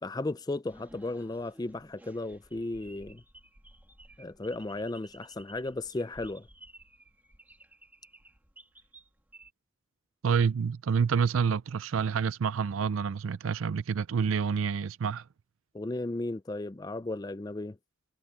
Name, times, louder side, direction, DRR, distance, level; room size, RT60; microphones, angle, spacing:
voice 1, 0.0-3.2 4.2-6.5 15.7-17.8, left 2 dB, 20° left, 0.4 m, -35 dB
sound 1, 0.6-9.5, right 1 dB, 10° right, 2.2 m, -55 dB
voice 2, 10.2-15.2, right 6 dB, 85° right, 0.4 m, -28 dB
head